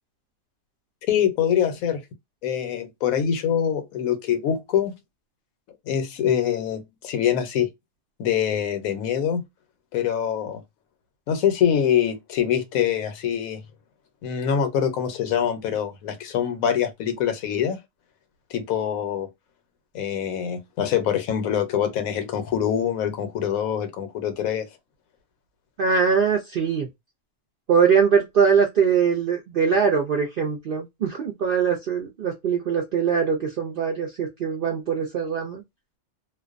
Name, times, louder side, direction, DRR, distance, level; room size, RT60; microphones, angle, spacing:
voice 1, 1.1-2.0 2.4-4.9 5.9-7.7 8.2-9.4 9.9-10.6 11.3-13.6 14.2-17.8 18.5-19.3 19.9-24.7, left 9 dB, 80° left, 1.1 m, -24 dB
voice 2, 25.8-26.9 27.7-35.6, right 6 dB, 70° right, 0.5 m, -22 dB
2.5 x 2.1 x 2.4 m
omnidirectional pair, 1.5 m